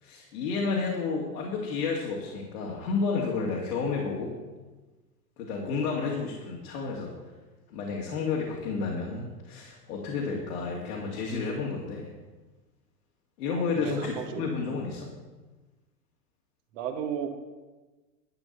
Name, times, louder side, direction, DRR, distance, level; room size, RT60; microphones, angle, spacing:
voice 1, 0.0-4.3 5.4-7.1 7.7-12.1 13.4-15.1, left 4 dB, 70° left, -2 dB, 2.5 m, -31 dB
voice 2, 13.5-14.5 16.7-17.3, right 8 dB, 50° right, 4 dB, 1.6 m, -35 dB
12.5 x 6.2 x 7.2 m, 1.2 s
hypercardioid pair, 115°, 48 cm